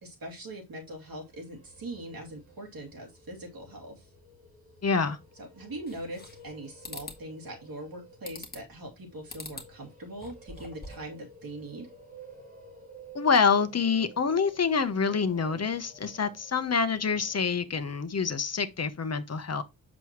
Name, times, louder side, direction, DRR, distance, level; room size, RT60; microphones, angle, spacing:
voice 1, 0.0-4.1 5.4-11.9, right 1 dB, 70° right, 2.6 m, -41 dB
sound 1, 0.9-17.9, right 3 dB, 20° right, 3.0 m, -53 dB
voice 2, 4.8-5.2 13.1-19.6, left 5 dB, 45° left, 0.9 m, -26 dB
sound 2, 5.9-6.5 6.8-7.2 8.3-8.8 9.3-9.7 10.1-11.1, left 3 dB, 25° left, 1.6 m, -43 dB
7.6 x 6.1 x 3.0 m
wide cardioid pair, 125°, 36 cm